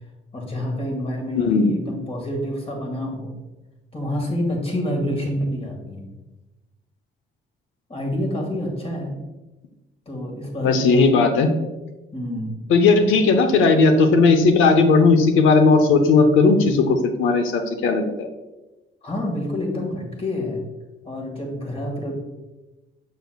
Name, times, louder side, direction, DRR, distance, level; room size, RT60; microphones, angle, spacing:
voice 1, 0.3-3.3 3.9-6.1 7.9-9.2 10.1-11.3 12.1-12.6 19.0-20.6 21.1-22.1, left 1 dB, 30° left, 0 dB, 1.8 m, -28 dB
voice 2, 1.4-1.7 10.6-11.5 12.7-18.3, left 4 dB, 85° left, 7 dB, 0.7 m, -16 dB
6.6 x 6.3 x 2.3 m, 1.1 s
cardioid pair, 90°, 20 cm